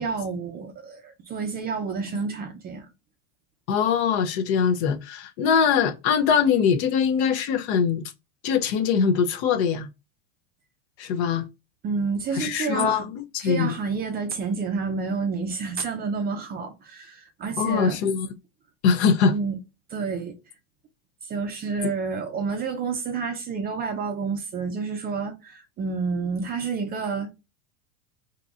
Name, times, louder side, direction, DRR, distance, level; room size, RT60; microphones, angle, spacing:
voice 1, 0.0-2.9 11.8-13.0 13.4-18.0 19.3-19.6 19.9-20.4 21.2-27.4, right 5 dB, 25° right, 0.5 m, -29 dB
voice 2, 3.7-8.0 8.4-9.9 11.0-11.5 12.3-13.7 17.6-18.3 18.8-19.3 21.8-21.9, left 6 dB, 50° left, 0.7 m, -22 dB
3.8 x 2.7 x 2.4 m
hypercardioid pair, 110°, 42 cm